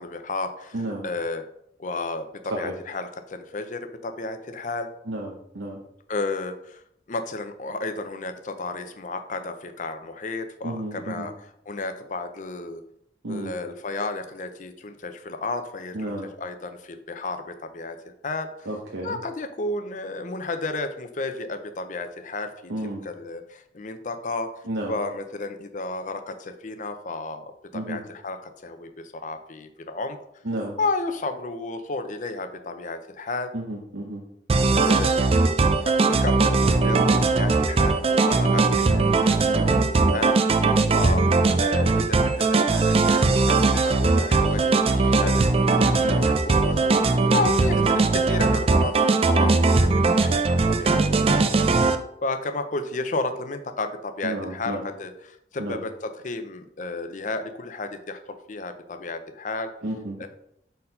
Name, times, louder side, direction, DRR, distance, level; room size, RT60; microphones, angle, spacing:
voice 1, 0.0-1.4 1.8-4.9 6.1-6.8 7.1-12.8 13.3-18.0 18.2-18.7 19.0-24.5 24.9-30.2 30.8-33.5 34.7-35.4 35.8-39.9 40.1-41.3 41.6-51.0 51.3-51.7 52.2-59.7 60.2-60.3, left 3 dB, 45° left, 8 dB, 0.6 m, -32 dB
voice 2, 0.7-1.1 2.5-2.7 5.1-5.8 10.6-11.3 13.2-13.5 15.9-16.3 18.7-19.2 22.7-23.0 24.7-25.0 27.7-28.0 30.4-30.8 33.5-34.2 39.5-40.3 46.0-46.3 46.8-47.1 54.2-54.9 55.6-55.8 59.8-60.3, right 1 dB, 80° right, -2 dB, 0.9 m, -32 dB
sound 1, 34.5-52.0, right 3 dB, 35° right, 0.4 m, -20 dB
4.3 x 4.1 x 5.4 m, 0.73 s
head